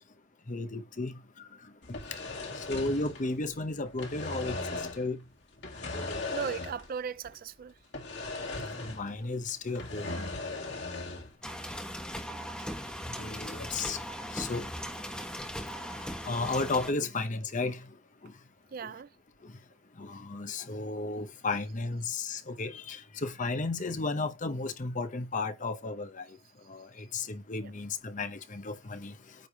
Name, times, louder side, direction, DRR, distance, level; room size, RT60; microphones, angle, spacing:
voice 1, 0.5-1.1 1.9-2.2 2.6-5.2 5.9-6.2 8.8-10.3 13.2-14.0 14.3-14.7 16.2-17.8 18.2-18.3 20.0-26.3 26.7-29.1, left 3 dB, 40° left, 0.8 m, -34 dB
sound 1, 1.8-3.6 3.9-5.1 5.6-7.0 7.2-7.4 7.9-9.2 9.5-11.3, left 3 dB, 60° left, 2.2 m, -38 dB
voice 2, 6.3-7.7 12.3-12.4 12.8-12.9 18.7-19.1 27.6-27.7, right 6 dB, 45° right, 0.4 m, -37 dB
sound 2, 11.4-16.9, equal, 5° left, 1.2 m, -39 dB
9.2 x 3.4 x 5.4 m
head